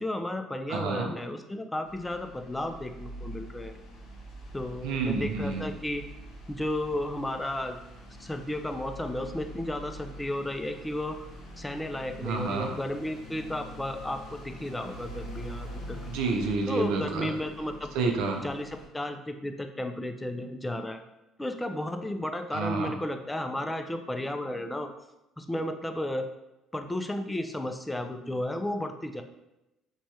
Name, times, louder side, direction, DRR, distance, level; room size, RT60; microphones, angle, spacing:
voice 1, 0.0-3.7 4.5-6.0 6.5-7.8 8.2-11.2 11.6-16.0 16.7-17.9 18.4-21.0 21.4-24.9 25.4-26.3 26.7-29.2, left 1 dB, 10° left, 6 dB, 0.3 m, -33 dB
voice 2, 0.7-1.1 4.8-5.6 12.2-12.8 16.1-17.3 17.9-18.4 22.5-22.9, right 4 dB, 75° right, 3 dB, 0.5 m, -29 dB
sound 1, 1.8-18.9, equal, 70° left, 0.8 m, -45 dB
3.1 x 2.2 x 2.7 m, 0.93 s
supercardioid pair, 75°, 0 cm